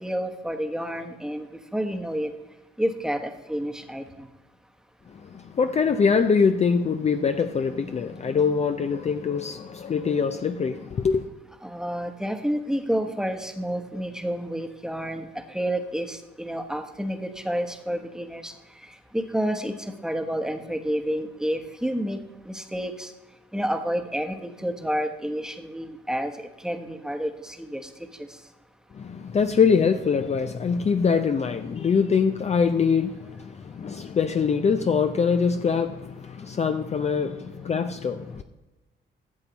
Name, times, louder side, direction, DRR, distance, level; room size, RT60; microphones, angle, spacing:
voice 1, 0.0-2.3 2.8-4.3 11.6-18.5 18.8-22.2 22.4-23.1 23.5-27.9, equal, 5° right, 1.1 m, -29 dB
voice 2, 5.2-11.2 28.9-38.4, left 5 dB, 35° left, 0.5 m, -23 dB
13.0 x 7.2 x 4.0 m
cardioid pair, 90°, 20 cm